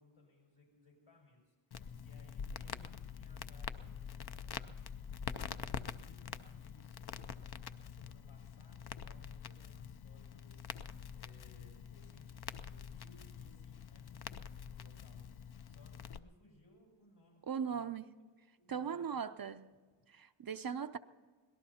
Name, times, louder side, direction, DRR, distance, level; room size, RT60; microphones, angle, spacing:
voice 1, 0.0-4.8 5.2-10.6 11.1-15.3 15.6-17.9 18.6-19.2 19.5-19.6, left 2 dB, 75° left, 6.0 m, -64 dB
Crackle, 1.7-16.2, left 7 dB, 50° left, 0.5 m, -46 dB
voice 2, 17.5-18.1 18.7-19.6 20.1-21.0, right 7 dB, 45° right, 0.5 m, -39 dB
25.0 x 18.0 x 2.8 m
wide cardioid pair, 85°, 50 cm